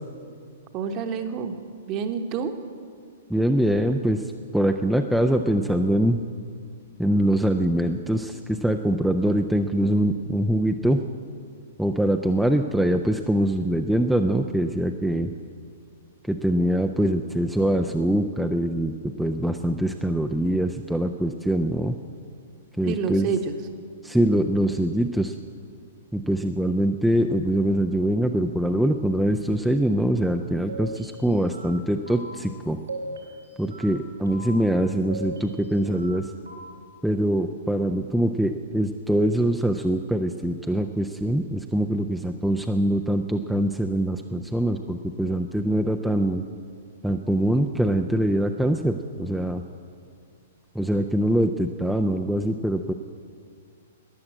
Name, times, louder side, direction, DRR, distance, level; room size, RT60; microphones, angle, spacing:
voice 1, 0.7-1.6 1.9-2.5 22.8-23.5, right 6 dB, 35° right, 7 dB, 1.1 m, -28 dB
voice 2, 3.3-6.2 7.0-11.0 11.8-15.3 16.3-21.9 22.8-23.3 24.0-25.3 26.1-32.8 33.6-36.3 37.0-46.4 47.0-49.6 50.7-52.9, right 1 dB, ahead, 4 dB, 0.5 m, -23 dB
sound 1, 30.7-31.8 32.1-32.3 32.9-34.0 34.3-34.5 35.1-36.2 36.5-36.6, right 2 dB, 80° right, 2.8 m, -38 dB
13.5 x 9.7 x 7.7 m, 2.1 s
figure-of-eight pair, 110°, 0 cm